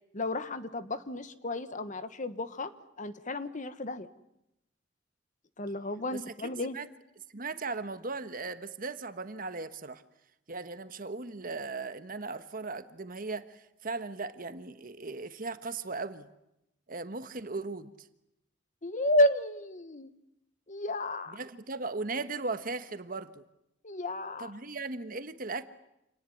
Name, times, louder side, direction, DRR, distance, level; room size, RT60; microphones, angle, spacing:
voice 1, 0.1-2.7 3.0-4.1 5.6-6.8 18.8-20.1 20.7-21.4 23.8-24.5, left 1 dB, 40° left, 12 dB, 1.4 m, -31 dB
voice 2, 6.1-6.9 7.3-10.0 10.5-16.3 16.9-17.9 21.3-23.4 24.4-25.6, right 3 dB, 50° right, 10 dB, 1.4 m, -37 dB
28.0 x 18.5 x 9.9 m, 0.85 s
head